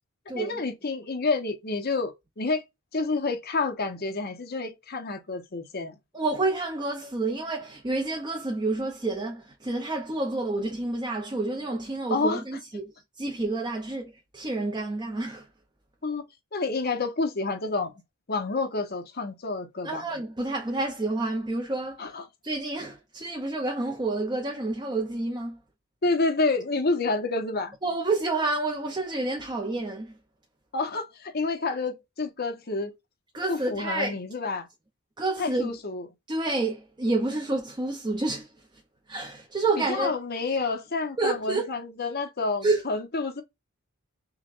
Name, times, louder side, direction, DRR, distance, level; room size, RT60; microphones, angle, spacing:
voice 1, 0.3-2.6 2.9-6.0 12.1-12.4 16.0-16.2 16.5-18.0 18.3-20.1 22.0-22.3 26.0-27.7 30.7-32.9 33.5-34.7 35.4-36.1 39.8-43.4, left 3 dB, 45° left, 0.9 m, -29 dB
voice 2, 6.1-15.5 19.8-22.1 22.4-25.6 27.8-30.1 33.3-34.2 35.2-35.7 36.3-38.5 39.1-40.1 41.2-41.7 42.6-42.8, right 2 dB, 20° right, 0.6 m, -29 dB
5.6 x 2.2 x 2.4 m
head